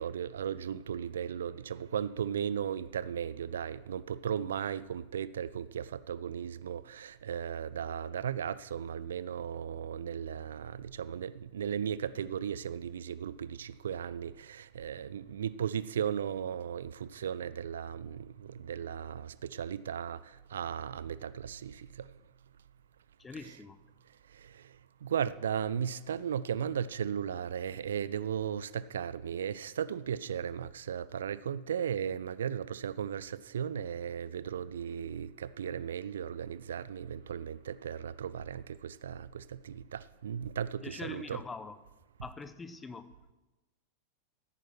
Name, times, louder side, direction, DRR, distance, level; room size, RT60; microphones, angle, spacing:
voice 1, 0.0-22.1 24.3-41.4, right 8 dB, 65° right, 0.4 m, -36 dB
voice 2, 23.2-23.8 40.8-41.8 42.2-43.1, left 4 dB, 15° left, 0.9 m, -43 dB
14.0 x 9.0 x 6.0 m
figure-of-eight pair, 90°, 0 cm